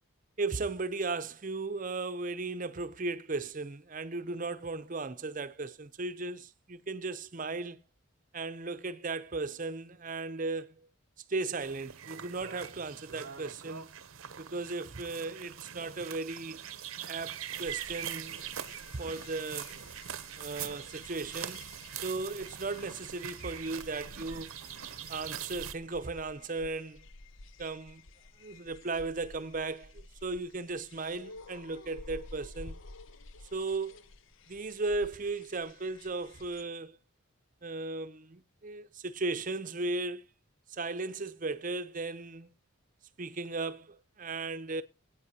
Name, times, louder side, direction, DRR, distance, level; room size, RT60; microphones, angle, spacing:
voice 1, 0.4-7.8 8.3-10.9 11.3-13.9 14.4-16.6 17.1-18.4 18.9-19.7 20.4-21.6 22.0-24.5 25.1-27.0 27.6-28.0 28.4-32.8 33.5-34.0 34.5-37.0 37.6-40.2 40.7-42.5 43.2-44.8, right 3 dB, 40° right, 0.7 m, -36 dB
sound 1, 11.6-25.7, right 9 dB, 80° right, 0.8 m, -43 dB
sound 2, 17.5-36.6, left 3 dB, 65° left, 0.7 m, -52 dB
21.5 x 8.9 x 2.8 m
head